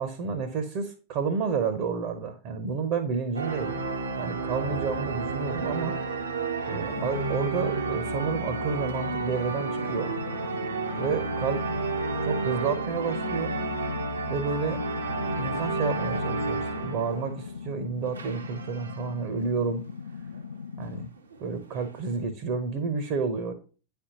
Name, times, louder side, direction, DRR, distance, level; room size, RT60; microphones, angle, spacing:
voice 1, 0.0-3.8 4.2-5.9 6.7-10.1 11.0-13.5 14.3-14.8 15.1-19.8 20.8-21.1 21.4-23.5, right 5 dB, 45° right, 8 dB, 0.8 m, -30 dB
sound 1, 3.3-17.7 18.1-19.3 19.9-20.0 20.2-20.4 21.2-22.2, right 3 dB, 75° right, 0.9 m, -31 dB
sound 2, 6.9-21.1, left 6 dB, 70° left, 0.4 m, -40 dB
9.7 x 3.5 x 2.9 m, 0.36 s
figure-of-eight pair, 90°, 0 cm